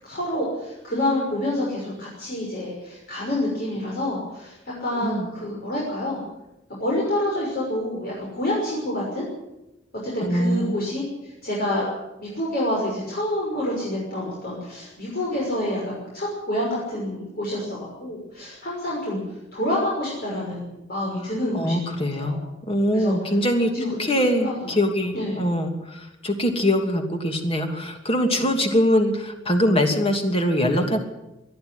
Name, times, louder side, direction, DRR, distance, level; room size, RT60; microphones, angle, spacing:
voice 1, 0.0-6.2 6.7-9.2 10.0-11.9 12.2-19.2 19.5-22.4 22.9-23.3 23.7-23.9 24.2-24.7 25.1-25.4 28.3-28.5, left 1 dB, 50° left, -4 dB, 6.2 m, -28 dB
voice 2, 10.2-10.8 21.5-22.4 22.7-23.7 24.0-31.0, equal, 30° left, 4 dB, 2.9 m, -22 dB
20.5 x 13.0 x 10.0 m, 0.94 s
head